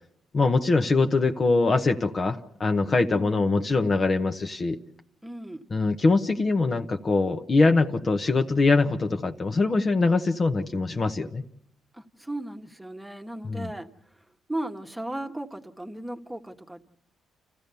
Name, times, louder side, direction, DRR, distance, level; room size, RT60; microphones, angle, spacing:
voice 1, 0.3-4.8 5.7-11.4 13.5-13.7, left 3 dB, 35° left, 6 dB, 0.9 m, -23 dB
voice 2, 5.2-5.6 11.9-13.9 14.5-16.8, right 1 dB, 10° right, 4 dB, 1.3 m, -36 dB
29.5 x 14.5 x 6.8 m, 0.80 s
cardioid pair, 90°, 0 cm